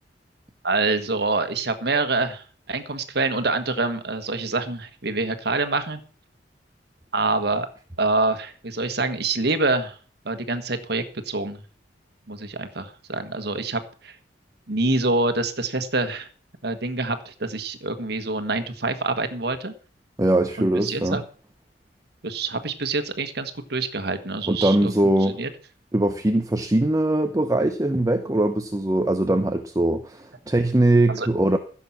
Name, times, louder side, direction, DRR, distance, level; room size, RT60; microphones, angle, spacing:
voice 1, 0.6-6.0 7.1-7.7 8.0-10.0 10.2-11.6 12.3-14.1 14.7-16.3 16.6-19.7 20.6-21.2 22.2-24.9 25.2-25.5 31.1-31.3, right 3 dB, 65° right, 10 dB, 1.5 m, -26 dB
voice 2, 20.2-21.2 24.5-25.4 25.9-31.6, right 1 dB, 20° right, 7 dB, 0.8 m, -21 dB
15.5 x 7.4 x 6.0 m, 0.41 s
head